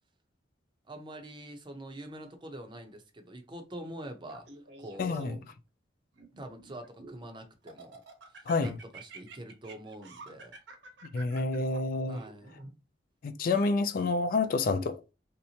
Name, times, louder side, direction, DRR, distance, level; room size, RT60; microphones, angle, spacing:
voice 1, 0.9-4.5 4.8-5.4 6.4-8.0 8.3-10.5 12.1-12.5, right 1 dB, 25° right, 0.6 m, -45 dB
Laughter, 4.2-5.5 6.1-7.2 7.7-12.7, right 3 dB, 70° right, 0.9 m, -50 dB
voice 2, 5.0-5.4 8.5-8.7 11.1-12.2 13.2-15.1, left 3 dB, 50° left, 0.3 m, -28 dB
3.3 x 2.8 x 2.7 m
head